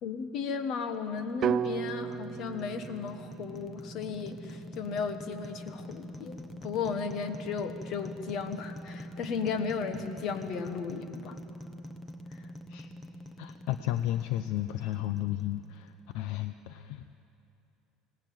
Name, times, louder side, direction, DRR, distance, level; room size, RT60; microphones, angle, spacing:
voice 1, 0.0-11.4, left 5 dB, 40° left, 9 dB, 1.4 m, -35 dB
sound 1, 0.9-16.1, left 1 dB, 5° left, 0.9 m, -45 dB
sound 2, 1.4-5.5, right 9 dB, 35° right, 0.5 m, -36 dB
voice 2, 13.4-17.2, left 13 dB, 65° left, 10 dB, 0.6 m, -33 dB
25.0 x 18.5 x 7.8 m, 2.9 s
cardioid pair, 170°, 0 cm